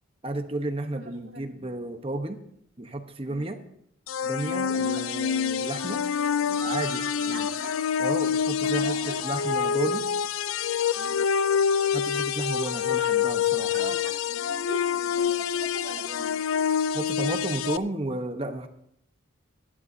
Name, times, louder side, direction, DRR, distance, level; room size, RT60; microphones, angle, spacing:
voice 1, 0.2-2.4 2.8-3.6 4.2-6.0 6.6-7.5 8.0-10.1 11.9-13.9 16.9-18.7, right 1 dB, 25° right, 7 dB, 1.0 m, -32 dB
voice 2, 0.9-1.8 3.3-3.5 4.7-5.0 6.4-6.9 7.2-7.7 8.5-9.3 11.0-11.2 13.6-16.3, right 2 dB, 70° right, -2 dB, 2.6 m, -42 dB
sound 1, 4.1-17.8, left 7 dB, 85° left, 0.4 m, -26 dB
sound 2, 6.5-9.8, right 1 dB, 25° left, 4.7 m, -43 dB
23.5 x 11.0 x 2.7 m, 0.73 s
head